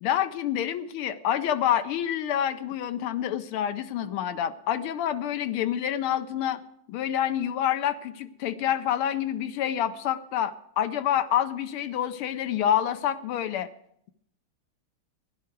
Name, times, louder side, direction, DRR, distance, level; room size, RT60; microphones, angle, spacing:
voice 1, 0.0-6.6 6.9-13.7, left 10 dB, 85° left, 9 dB, 1.5 m, -27 dB
16.5 x 11.0 x 4.5 m, 0.71 s
omnidirectional pair, 2.3 m